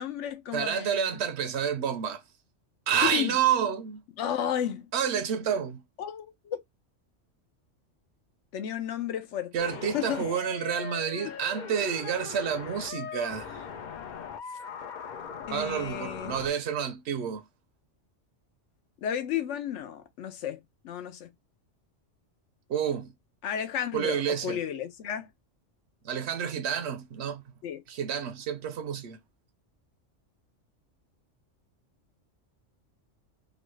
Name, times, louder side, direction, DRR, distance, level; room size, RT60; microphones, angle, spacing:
voice 1, 0.0-1.0 3.1-3.4 4.2-4.9 6.0-6.6 8.5-10.3 15.5-16.4 19.0-20.6 20.8-21.3 23.4-25.3 27.6-27.8, left 9 dB, 75° left, 0.9 m, -33 dB
voice 2, 0.5-2.2 2.9-4.0 4.9-5.8 9.5-13.6 15.5-17.4 22.7-23.1 23.9-24.6 26.0-27.4 27.9-29.2, right 8 dB, 70° right, 0.8 m, -29 dB
sound 1, 9.6-16.5, left 7 dB, 55° left, 0.5 m, -40 dB
3.0 x 2.3 x 3.1 m
omnidirectional pair, 1.3 m